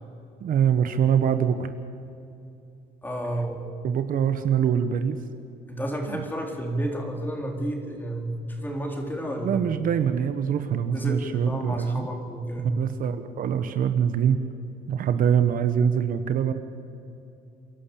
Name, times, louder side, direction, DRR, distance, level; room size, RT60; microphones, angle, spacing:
voice 1, 0.4-1.7 3.8-5.2 6.1-6.2 9.4-12.1 12.8-14.4 14.9-16.5, right 8 dB, 55° right, 9 dB, 1.2 m, -24 dB
voice 2, 3.0-3.6 5.7-9.6 10.9-12.8, right 1 dB, 10° left, 2 dB, 3.8 m, -31 dB
28.0 x 11.5 x 8.6 m, 2.7 s
cardioid pair, 110°, 17 cm